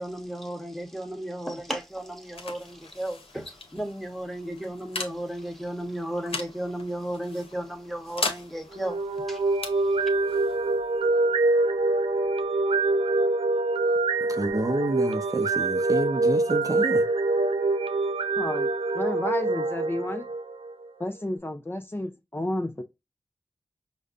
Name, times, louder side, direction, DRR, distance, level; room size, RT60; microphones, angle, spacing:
voice 1, 0.0-9.0 9.3-9.5 9.8-10.0, right 1 dB, ahead, 1.2 m, -34 dB
sound 1, 1.6-12.9, left 3 dB, 90° left, 0.8 m, -40 dB
sound 2, 8.7-20.9, right 2 dB, 85° right, 0.5 m, -25 dB
voice 2, 14.2-17.1, right 2 dB, 40° right, 0.6 m, -29 dB
voice 3, 18.4-20.3 21.0-22.8, left 1 dB, 25° left, 0.6 m, -31 dB
5.0 x 2.2 x 2.4 m
cardioid pair, 45°, 9 cm